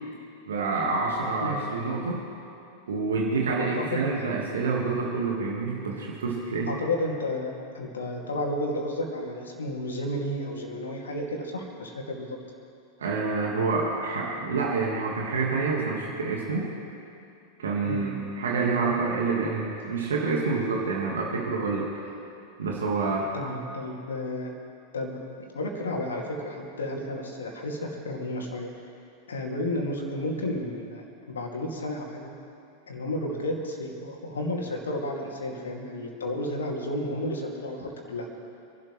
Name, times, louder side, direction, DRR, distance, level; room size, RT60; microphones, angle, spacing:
voice 1, 0.5-2.2 2.9-6.7 13.0-16.7 17.6-21.9 22.6-23.3, right 4 dB, 65° right, -2 dB, 1.8 m, -27 dB
voice 2, 3.6-4.1 6.7-12.4 17.8-18.0 23.3-24.5 24.9-25.2 25.5-28.7 29.3-32.3 32.9-38.3, left 1 dB, 70° left, 1 dB, 2.4 m, -32 dB
26.0 x 12.0 x 3.3 m, 2.6 s
figure-of-eight pair, 90°, 0 cm